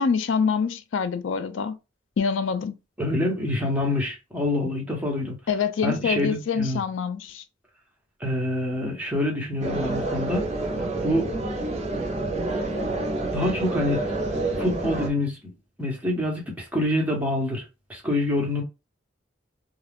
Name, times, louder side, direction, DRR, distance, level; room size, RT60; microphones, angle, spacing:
voice 1, 0.0-1.8 2.2-2.8 5.5-7.4, left 6 dB, 85° left, 0.4 m, -25 dB
voice 2, 3.0-5.4 5.8-6.8 8.2-10.5 11.0-11.3 13.3-14.0 14.6-15.5 15.8-17.6 17.9-18.6, left 1 dB, 10° right, 1.0 m, -26 dB
sound 1, 9.6-15.1, right 2 dB, 35° right, 0.6 m, -28 dB
2.3 x 2.3 x 3.4 m
head